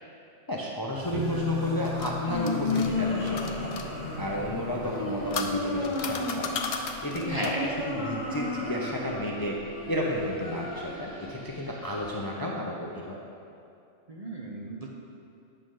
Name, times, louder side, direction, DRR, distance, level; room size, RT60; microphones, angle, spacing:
voice 1, 0.5-3.7 4.2-9.6 9.9-13.2, equal, 25° left, -2 dB, 0.5 m, -32 dB
sound 1, 0.9-12.2, left 2 dB, 85° left, 1.7 m, -34 dB
sound 2, 1.1-6.7, left 2 dB, 80° right, 1.6 m, -37 dB
sound 3, 1.6-3.9 4.8-7.7, left 5 dB, 60° left, 0.7 m, -36 dB
voice 2, 7.3-7.7 14.1-14.9, right 1 dB, 40° right, -2 dB, 0.6 m, -34 dB
8.6 x 6.3 x 3.8 m, 2.6 s
omnidirectional pair, 1.2 m